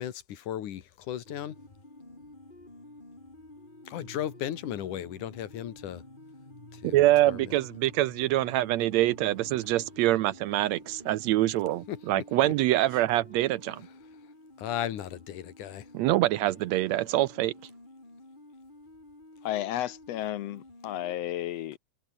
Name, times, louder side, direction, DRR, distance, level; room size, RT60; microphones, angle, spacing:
voice 1, 0.0-1.6 3.9-6.0 6.7-7.6 11.9-12.5 12.9-13.0 13.7-14.0 14.6-15.9, left 11 dB, 90° left, 3.1 m, -36 dB
sound 1, 1.3-21.2, left 2 dB, 15° left, 4.5 m, -50 dB
voice 2, 6.8-13.8 15.9-17.5, right 15 dB, 80° right, 1.7 m, -25 dB
voice 3, 19.4-21.8, left 13 dB, 70° left, 1.7 m, -33 dB
omnidirectional pair, 3.4 m